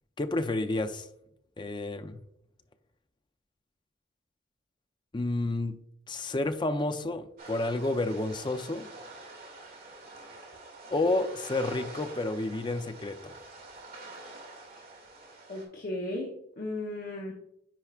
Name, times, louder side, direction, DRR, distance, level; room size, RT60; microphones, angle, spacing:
voice 1, 0.2-1.1 1.6-2.2 5.1-5.8 6.1-8.9 10.9-13.3, left 2 dB, 25° left, 9 dB, 0.5 m, -30 dB
sound 1, 7.4-15.7, right 2 dB, 50° right, 2.2 m, -46 dB
voice 2, 15.5-17.3, left 1 dB, 50° left, 0 dB, 0.8 m, -35 dB
10.0 x 4.7 x 2.4 m, 0.75 s
head